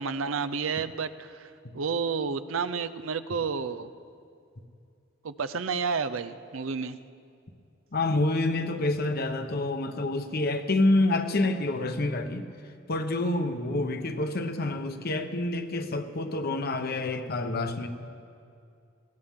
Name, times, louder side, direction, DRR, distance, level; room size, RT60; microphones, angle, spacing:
voice 1, 0.0-3.9 5.2-7.0, right 5 dB, 80° right, 12 dB, 0.6 m, -31 dB
voice 2, 7.9-12.4 12.9-17.9, left 2 dB, 50° left, 7 dB, 1.0 m, -27 dB
19.5 x 17.0 x 3.7 m, 2.4 s
head